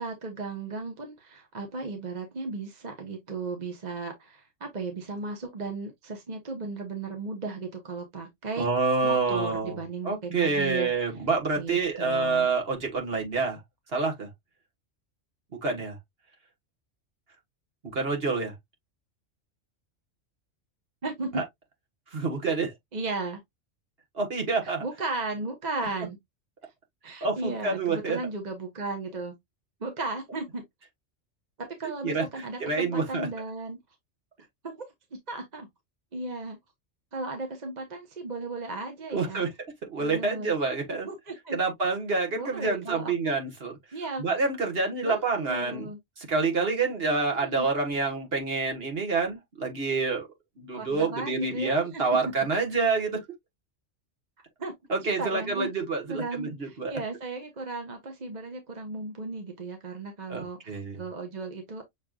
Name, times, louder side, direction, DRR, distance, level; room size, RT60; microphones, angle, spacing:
voice 1, 0.0-8.7 9.0-10.9 11.6-12.5 21.0-21.4 22.9-23.4 24.6-26.2 27.0-29.3 29.8-30.6 31.6-33.8 34.6-34.8 35.3-35.7 36.1-36.6 37.1-39.5 40.0-40.5 41.1-41.6 42.3-43.3 43.9-44.2 45.0-46.0 47.4-47.7 50.7-52.0 54.6-54.7 55.2-55.7 56.1-61.8, right 3 dB, 35° right, 1.1 m, -35 dB
voice 2, 8.6-9.8 10.0-13.6 13.9-14.3 15.6-16.0 17.9-18.5 21.3-21.4 22.1-22.7 24.1-24.8 27.2-28.2 32.0-33.3 39.1-39.5 39.9-41.1 41.5-43.7 44.2-45.9 46.2-50.3 50.6-53.2 54.9-56.9 60.3-61.0, right 4 dB, 50° right, 1.7 m, -27 dB
6.6 x 3.3 x 2.3 m
omnidirectional pair, 1.3 m